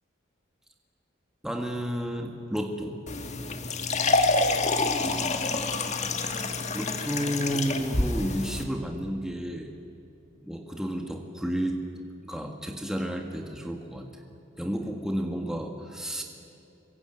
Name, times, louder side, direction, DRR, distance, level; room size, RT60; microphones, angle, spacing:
voice 1, 1.4-3.0 5.0-5.7 6.7-9.7 10.4-11.8 12.2-14.1 14.6-16.2, equal, 5° right, 2 dB, 1.7 m, -32 dB
sound 1, 3.1-8.6, left 3 dB, 35° left, 1.7 m, -27 dB
27.0 x 22.5 x 9.2 m, 2.8 s
head